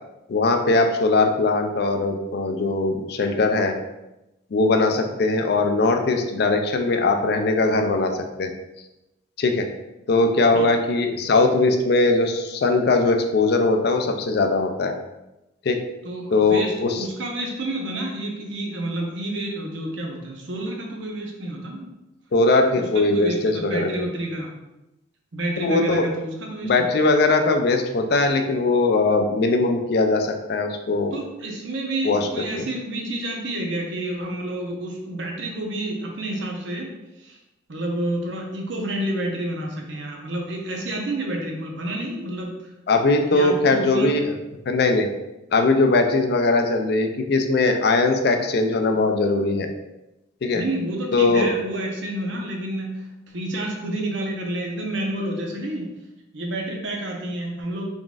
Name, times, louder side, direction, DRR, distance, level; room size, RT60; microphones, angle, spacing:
voice 1, 0.3-3.8 4.5-8.5 9.4-9.7 10.1-14.9 15.6-15.8 16.3-17.0 22.3-24.1 25.6-26.1 26.6-31.2 32.0-32.3 32.6-32.7 42.9-44.3 44.7-45.1 45.5-49.7 50.4-50.6 51.1-51.5, left 3 dB, 55° left, 5 dB, 0.4 m, -20 dB
voice 2, 16.0-21.9 22.7-24.5 25.3-26.7 31.1-36.9 37.2-37.4 37.7-42.6 43.3-44.1 50.5-53.1 53.3-55.9 56.3-57.9, right 1 dB, 70° right, 0 dB, 0.8 m, -29 dB
3.9 x 3.6 x 2.4 m, 0.96 s
head